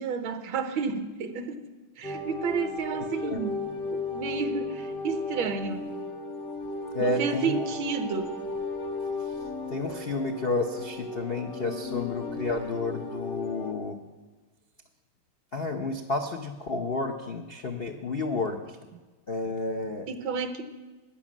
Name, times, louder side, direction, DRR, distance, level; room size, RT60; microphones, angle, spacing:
voice 1, 0.0-1.6 2.0-5.9 7.0-8.4 20.1-20.6, right 5 dB, 70° right, 8 dB, 1.8 m, -31 dB
sound 1, 2.0-13.7, left 3 dB, 55° left, 2.0 m, -35 dB
voice 2, 2.9-3.4 6.9-7.6 9.2-9.4 9.7-14.0 15.5-18.8 19.3-20.1, left 3 dB, 75° left, 4 dB, 0.5 m, -31 dB
15.5 x 10.0 x 7.4 m, 1.3 s
omnidirectional pair, 2.4 m